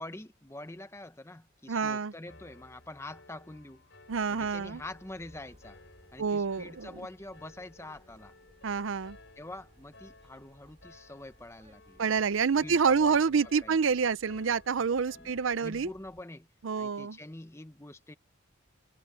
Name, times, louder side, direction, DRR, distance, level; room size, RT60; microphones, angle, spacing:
voice 1, 0.0-3.8 4.3-5.8 6.1-8.3 9.4-12.0 12.6-13.8 15.1-16.5 16.8-18.2, left 1 dB, 15° left, 0.9 m, -45 dB
voice 2, 1.7-2.1 4.1-4.8 6.2-6.9 8.6-9.2 12.0-15.9 16.6-17.2, right 5 dB, 70° right, 0.5 m, -27 dB
Piano, 2.2-16.0, left 2 dB, 60° left, 5.2 m, -57 dB
sound 1, 4.1-16.2, equal, 30° right, 4.0 m, -61 dB
head